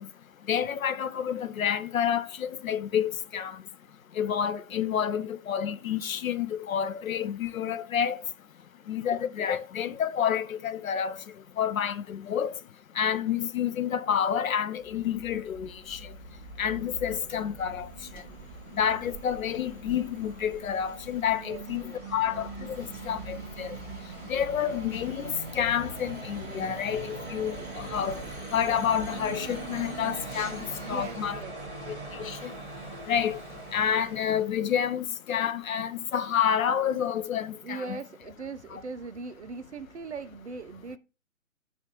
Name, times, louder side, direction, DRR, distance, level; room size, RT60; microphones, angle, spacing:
voice 1, 0.5-3.6 4.2-8.2 8.9-11.2 11.6-12.5 13.0-16.0 16.6-17.9 18.8-23.8 24.3-28.2 28.5-31.4 31.9-32.5 33.1-33.4 33.7-38.0 38.7-38.8, left 8 dB, 75° left, 0.5 m, -29 dB
sound 1, 14.7-34.6, right 3 dB, 5° right, 0.7 m, -41 dB
voice 2, 21.4-22.0 30.8-31.5 37.6-41.0, right 4 dB, 55° right, 0.5 m, -40 dB
5.1 x 2.4 x 2.9 m
figure-of-eight pair, 145°, 42 cm